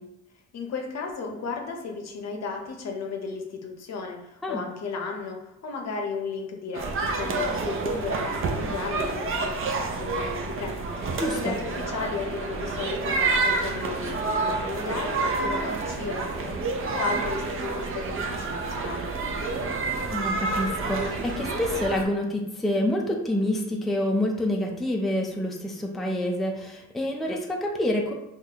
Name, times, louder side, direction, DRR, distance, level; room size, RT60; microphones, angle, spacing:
voice 1, 0.5-10.8 11.3-19.1, left 4 dB, 60° left, 2 dB, 0.7 m, -34 dB
sound 1, 6.7-22.0, right 3 dB, 45° right, 0.6 m, -29 dB
voice 2, 11.2-11.5 20.1-28.2, left 1 dB, ahead, 0 dB, 0.4 m, -27 dB
3.8 x 2.4 x 2.8 m, 0.87 s
cardioid pair, 90°, 30 cm